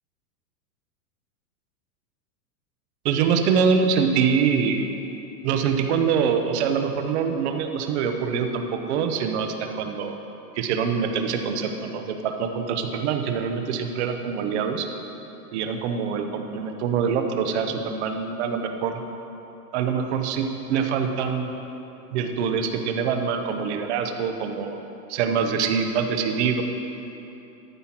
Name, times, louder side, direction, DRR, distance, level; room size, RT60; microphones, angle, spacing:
voice 1, 3.0-4.9 5.4-10.2 10.5-14.9 15.5-19.0 19.7-21.5 22.1-24.8 25.1-26.6, right 6 dB, 45° right, 6 dB, 0.8 m, -24 dB
13.0 x 5.6 x 5.9 m, 2.9 s
supercardioid pair, 160°, 49 cm